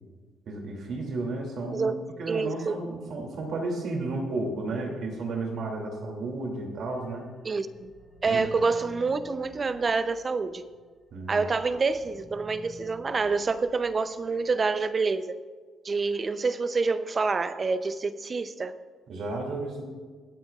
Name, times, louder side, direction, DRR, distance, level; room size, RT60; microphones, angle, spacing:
voice 1, 0.5-7.3 8.2-8.5 11.1-11.5 19.1-19.8, right 2 dB, 65° right, 1 dB, 2.7 m, -33 dB
voice 2, 2.3-2.7 7.4-7.9 8.2-10.6 11.3-15.4 15.8-18.7, right 4 dB, 35° right, 12 dB, 0.7 m, -27 dB
sound 1, 6.9-10.8 11.2-14.6, equal, 5° left, 3.9 m, -52 dB
25.5 x 8.6 x 2.5 m, 1.5 s
cardioid pair, 90°, 0 cm